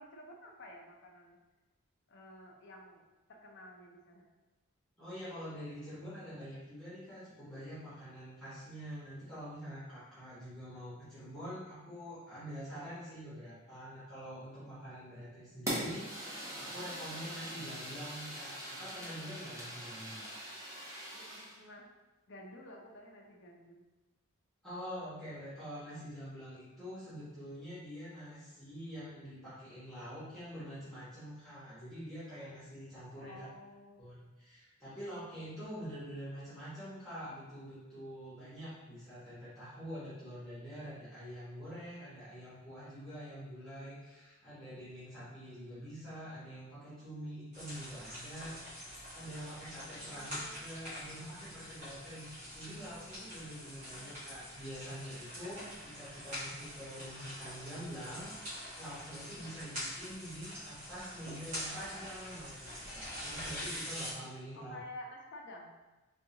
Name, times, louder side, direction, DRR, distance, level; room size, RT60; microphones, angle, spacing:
voice 1, 0.0-1.4 2.1-4.3 15.5-15.9 20.2-20.7 21.1-21.9 22.3-23.8 33.2-34.1 49.9-50.6 54.0-54.6 64.5-65.7, left 1 dB, 55° left, 0 dB, 0.5 m, -52 dB
voice 2, 5.0-20.2 24.6-33.5 34.0-48.8 49.1-64.8, equal, ahead, -13 dB, 1.1 m, -46 dB
Fire, 15.7-21.6, right 1 dB, 15° right, 0.7 m, -42 dB
sound 1, 47.5-64.1, equal, 35° right, 1.3 m, -45 dB
3.6 x 2.3 x 2.8 m, 1.1 s
head